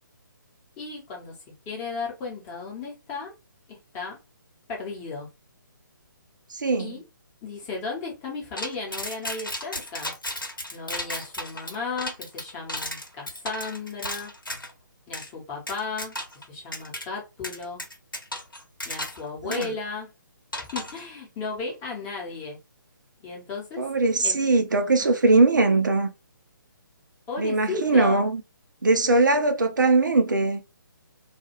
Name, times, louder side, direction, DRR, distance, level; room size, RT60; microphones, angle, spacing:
voice 1, 0.8-3.3 3.7-4.2 4.7-5.3 6.8-7.0 7.4-10.1 10.7-14.3 15.1-16.2 16.5-17.8 18.8-20.1 20.6-22.6 23.2-23.9 24.2-24.4 27.3-28.2, left 4 dB, 15° left, 0.8 m, -35 dB
voice 2, 6.5-7.0 19.4-19.7 23.8-26.1 27.4-28.4 28.8-30.6, right 3 dB, 65° right, 0.5 m, -21 dB
sound 1, 8.6-14.7 15.1-15.3 15.7-16.4 16.7-17.0 17.4-19.2 19.5-19.7 20.5-21.0, left 1 dB, 80° left, 1.0 m, -34 dB
2.4 x 2.2 x 2.9 m
figure-of-eight pair, 140°, 11 cm